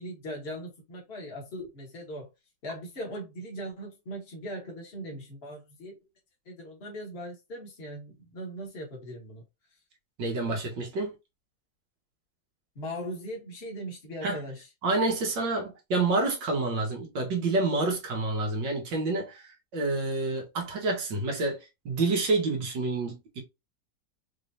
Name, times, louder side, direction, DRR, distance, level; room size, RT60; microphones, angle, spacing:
voice 1, 0.0-2.3 2.6-6.0 6.5-9.4 12.8-14.7, equal, 35° left, 1.7 m, -39 dB
voice 2, 10.2-11.1 14.2-14.4 14.8-23.4, right 3 dB, 90° right, 2.0 m, -28 dB
5.2 x 3.3 x 2.7 m
omnidirectional pair, 1.9 m